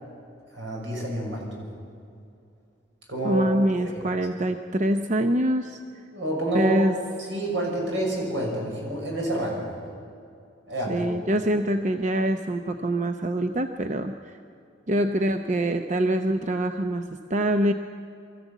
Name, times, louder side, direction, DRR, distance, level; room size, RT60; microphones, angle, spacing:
voice 1, 0.5-1.6 3.1-3.6 3.9-4.0 6.1-6.9 7.3-9.7 10.7-11.1, right 1 dB, 80° right, -1 dB, 6.5 m, -28 dB
voice 2, 3.2-5.8 6.5-7.0 10.9-14.4 14.9-17.7, right 1 dB, 40° right, 7 dB, 0.7 m, -25 dB
23.5 x 14.5 x 8.3 m, 2.5 s
head